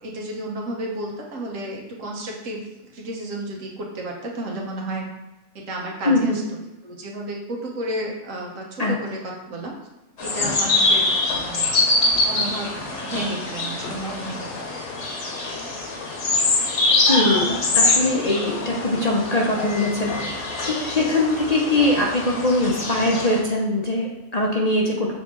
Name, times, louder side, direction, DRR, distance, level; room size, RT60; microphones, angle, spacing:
voice 1, 0.0-2.6 2.9-5.1 5.5-6.4 6.8-9.7 10.2-11.7 12.2-12.7 13.0-14.7, right 1 dB, 75° right, 0 dB, 1.5 m, -32 dB
voice 2, 6.1-6.4 8.8-9.0 17.1-25.2, left 2 dB, 40° left, -2 dB, 0.7 m, -22 dB
sound 1, 10.2-23.4, left 3 dB, 60° left, 1.3 m, -24 dB
6.6 x 3.9 x 3.7 m, 1.0 s
omnidirectional pair, 1.3 m